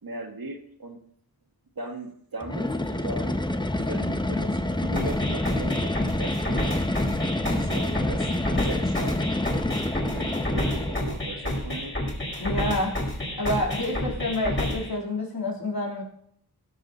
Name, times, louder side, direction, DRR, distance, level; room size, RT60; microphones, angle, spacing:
voice 1, 0.0-1.0 1.8-3.4 3.7-6.7 7.4-9.2 10.1-12.0, right 2 dB, 65° right, 2 dB, 1.9 m, -38 dB
sound 1, 2.4-11.2, left 1 dB, 10° left, 0.8 m, -28 dB
sound 2, 5.0-15.0, left 1 dB, 30° left, 5.7 m, -30 dB
voice 2, 12.4-13.1 13.4-16.0, left 1 dB, 70° left, -2 dB, 3.5 m, -28 dB
16.5 x 7.8 x 4.1 m, 0.67 s
wide cardioid pair, 75°, 38 cm